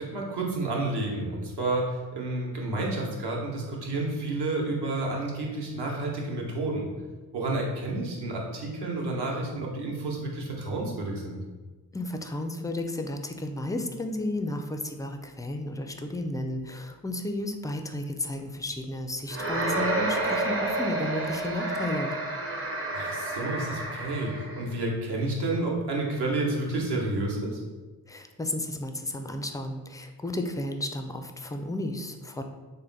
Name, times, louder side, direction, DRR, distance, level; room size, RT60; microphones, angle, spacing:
voice 1, 0.0-6.9 7.3-11.4 22.9-27.6, right 2 dB, 60° right, -1 dB, 1.1 m, -30 dB
voice 2, 11.9-22.1 28.1-32.4, left 1 dB, 10° left, 5 dB, 0.3 m, -33 dB
sound 1, 19.3-24.7, right 2 dB, 30° right, 0.8 m, -30 dB
3.5 x 2.2 x 3.9 m, 1.3 s
supercardioid pair, 45°, 45 cm